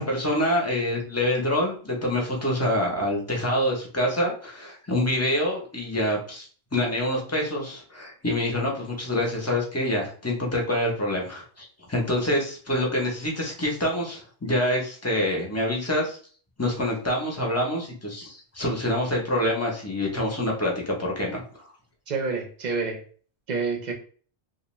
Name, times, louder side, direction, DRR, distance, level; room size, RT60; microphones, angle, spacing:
voice 1, 0.0-16.2 16.6-21.4, left 1 dB, 20° left, -1 dB, 0.5 m, -26 dB
voice 2, 22.1-23.0 23.5-23.9, right 4 dB, 50° right, 3 dB, 0.6 m, -28 dB
2.4 x 2.1 x 3.0 m, 0.43 s
omnidirectional pair, 1.1 m